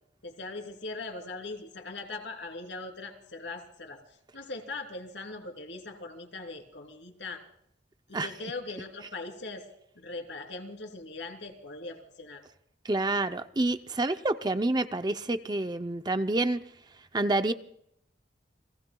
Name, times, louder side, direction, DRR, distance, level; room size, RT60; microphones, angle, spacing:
voice 1, 0.2-4.0 4.3-7.4 8.1-9.6 9.9-12.4, left 3 dB, 75° left, 3.2 m, -40 dB
voice 2, 12.8-16.6 17.1-17.5, right 2 dB, 25° right, 0.6 m, -28 dB
30.0 x 18.5 x 2.3 m
head